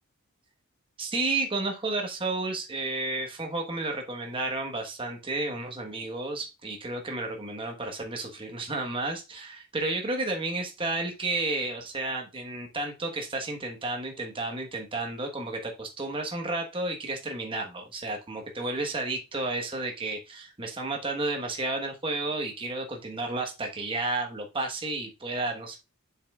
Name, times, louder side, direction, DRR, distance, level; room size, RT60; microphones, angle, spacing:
voice 1, 1.0-25.8, right 2 dB, 25° right, 1.2 m, -32 dB
7.3 x 5.7 x 2.3 m
head